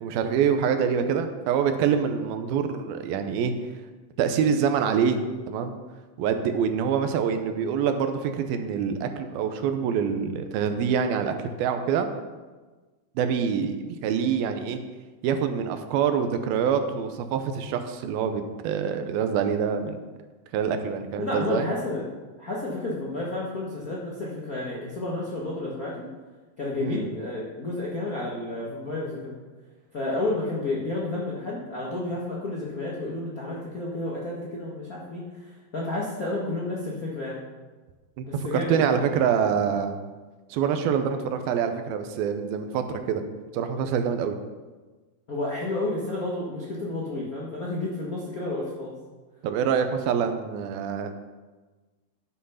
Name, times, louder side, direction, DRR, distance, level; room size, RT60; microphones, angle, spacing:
voice 1, 0.0-3.5 4.2-5.2 5.5-5.8 6.2-12.1 13.2-14.8 15.2-20.0 20.5-21.7 26.8-27.0 38.2-40.0 40.5-43.2 43.5-44.4 49.4-51.1, right 7 dB, 80° right, 7 dB, 2.6 m, -25 dB
voice 2, 21.2-22.0 22.4-26.0 26.6-29.3 29.9-37.4 38.3-39.0 45.3-48.9, left 2 dB, 70° left, -5 dB, 0.8 m, -31 dB
11.5 x 6.3 x 5.6 m, 1.3 s
omnidirectional pair, 4.3 m